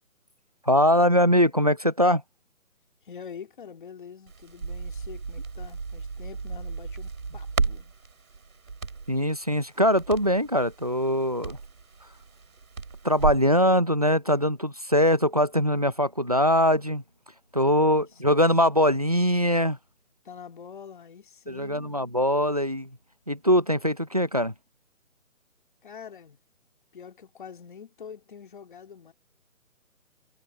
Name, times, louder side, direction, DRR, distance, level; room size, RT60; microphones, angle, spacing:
voice 1, 0.6-2.2 9.1-11.6 13.0-17.0 17.5-19.8 21.5-23.0 23.3-24.5, equal, 30° right, 0.5 m, -22 dB
voice 2, 3.0-7.9 17.8-18.4 20.2-22.0 25.8-26.4 26.9-29.1, left 7 dB, 35° left, 2.2 m, -45 dB
Crackle, 4.3-13.5, right 4 dB, 75° right, 6.8 m, -34 dB
hypercardioid pair, 170°, 43 cm